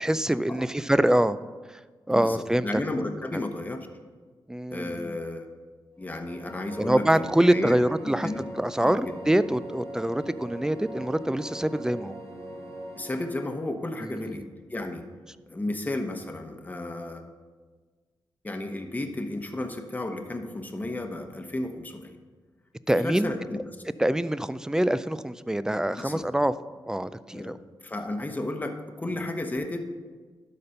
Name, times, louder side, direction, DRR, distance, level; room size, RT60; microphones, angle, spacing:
voice 1, 0.0-1.4 1.7-1.8 2.1-2.7 4.5-5.2 6.8-8.3 8.6-12.2 14.0-14.4 22.9-23.3 24.0-26.5 26.9-27.6, right 1 dB, 5° right, 15 dB, 0.3 m, -25 dB
voice 2, 2.1-3.9 4.7-5.5 6.0-7.8 8.0-8.5 8.8-9.2 13.0-15.0 15.5-17.2 18.4-22.2 22.9-23.6 25.9-26.3 27.3-29.8, left 2 dB, 20° left, 5 dB, 1.0 m, -33 dB
sound 1, 5.9-13.8, right 1 dB, 85° right, 2.9 m, -41 dB
12.0 x 4.2 x 5.7 m, 1.4 s
cardioid pair, 85°, 8 cm